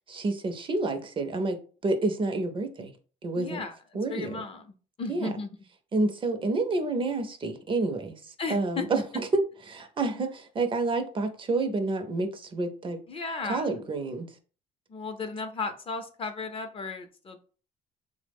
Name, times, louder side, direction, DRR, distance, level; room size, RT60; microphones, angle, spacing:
voice 1, 0.1-2.9 3.2-3.6 3.9-4.4 5.1-5.3 5.9-13.0 13.4-14.4, right 2 dB, 30° right, 0.5 m, -29 dB
voice 2, 3.3-3.8 4.1-4.6 5.0-5.5 8.4-8.9 13.1-13.7 14.9-17.4, left 4 dB, 35° left, 0.5 m, -34 dB
3.1 x 2.0 x 3.4 m
cardioid pair, 110°, 17 cm